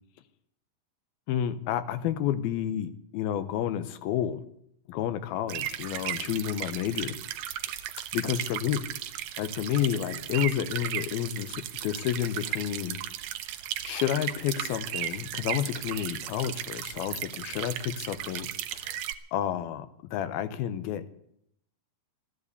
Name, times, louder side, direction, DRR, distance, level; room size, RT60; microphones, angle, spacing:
voice 1, 1.3-4.4 4.9-7.2 8.1-8.8 9.4-13.0 13.8-19.0 19.3-21.1, left 11 dB, 80° left, 12 dB, 2.7 m, -30 dB
sound 1, 5.5-19.1, right 12 dB, 75° right, 1.9 m, -35 dB
14.0 x 10.5 x 8.3 m, 0.71 s
omnidirectional pair, 4.5 m